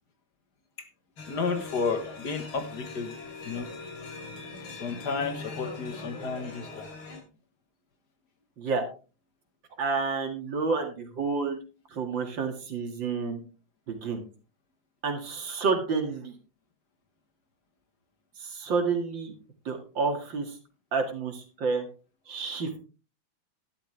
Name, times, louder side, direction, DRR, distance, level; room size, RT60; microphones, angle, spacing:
sound 1, 1.2-7.2, left 3 dB, 90° left, 3.5 m, -41 dB
voice 1, 1.3-3.1 3.5-3.7 4.7-6.9, left 5 dB, 55° left, 1.8 m, -32 dB
voice 2, 9.8-11.6 11.9-13.4 13.9-14.2 15.0-16.3 18.4-19.3 19.7-20.5 20.9-21.8 22.3-22.7, right 4 dB, 65° right, 2.7 m, -29 dB
12.0 x 11.5 x 3.3 m
omnidirectional pair, 2.3 m